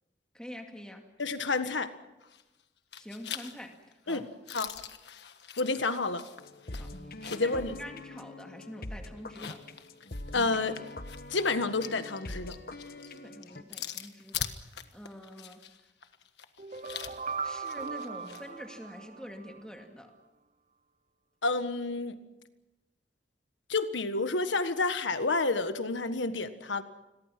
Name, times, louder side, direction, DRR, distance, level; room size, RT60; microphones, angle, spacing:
voice 1, 0.3-1.1 3.0-3.8 4.0-4.3 6.7-6.9 7.2-9.6 13.1-15.8 17.4-20.1, equal, 5° left, 3 dB, 2.3 m, -46 dB
voice 2, 1.2-1.9 4.1-4.2 4.5-4.7 5.6-6.2 7.3-7.7 10.3-10.8 11.3-12.6 21.4-22.2 23.7-26.8, left 3 dB, 90° left, 10 dB, 1.6 m, -29 dB
sound 1, 2.2-2.6 2.9-7.6 8.0-8.1 9.2-18.5, left 9 dB, 70° left, 1.5 m, -43 dB
sound 2, 6.4-13.6, left 2 dB, 50° left, 1.4 m, -44 dB
sound 3, 16.6-19.6, right 5 dB, 45° right, 0.8 m, -39 dB
29.0 x 22.0 x 6.0 m, 1.0 s
head